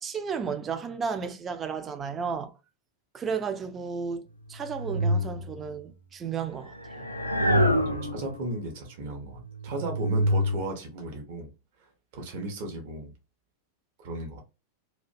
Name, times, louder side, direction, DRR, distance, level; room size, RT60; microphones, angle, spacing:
voice 1, 0.0-2.5 3.1-7.1, right 6 dB, 25° right, 0.3 m, -33 dB
sound 1, 4.4-5.9 6.7-8.5 9.2-10.6, equal, 85° left, 0.4 m, -27 dB
voice 2, 7.9-11.5 12.1-13.1 14.0-14.4, right 2 dB, 50° right, 0.7 m, -35 dB
2.5 x 2.1 x 2.4 m
figure-of-eight pair, 90°, 0 cm